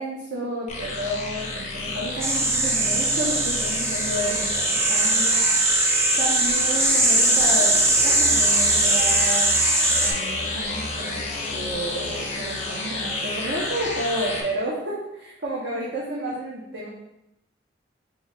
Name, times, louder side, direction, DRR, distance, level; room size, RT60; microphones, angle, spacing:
voice 1, 0.0-7.7 8.0-9.5 9.8-11.3 11.5-16.9, right 1 dB, 85° right, -5 dB, 0.8 m, -31 dB
sound 1, 0.7-14.4, left 2 dB, 40° left, 0.7 m, -31 dB
sound 2, 2.2-10.1, right 2 dB, 15° right, 0.4 m, -21 dB
4.6 x 2.7 x 3.3 m, 0.86 s
head